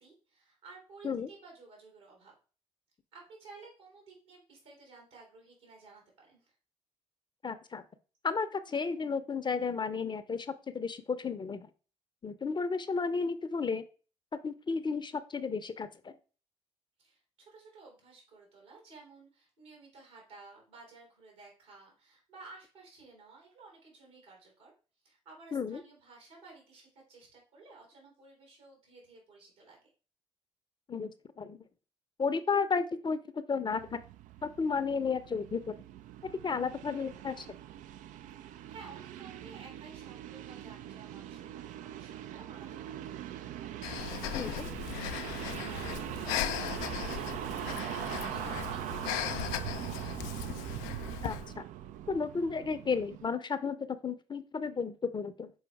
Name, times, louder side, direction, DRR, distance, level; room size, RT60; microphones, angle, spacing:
voice 1, 0.0-2.3 3.1-6.5 17.0-24.7 25.0-29.8 38.3-50.2, right 3 dB, 80° right, -1 dB, 2.9 m, -55 dB
voice 2, 7.4-7.8 8.2-11.7 12.2-13.8 14.4-16.1 25.5-25.8 30.9-31.1 31.4-31.6 32.2-33.8 34.4-35.7 36.4-37.5 44.3-44.7 51.2-51.7 52.1-55.5, left 5 dB, 30° left, 12 dB, 0.6 m, -33 dB
sound 1, 33.7-53.3, right 12 dB, 55° right, 0.4 m, -41 dB
Breathing, 43.8-51.5, left 13 dB, 70° left, 0.4 m, -38 dB
6.2 x 4.4 x 3.4 m, 0.37 s
figure-of-eight pair, 45°, 15 cm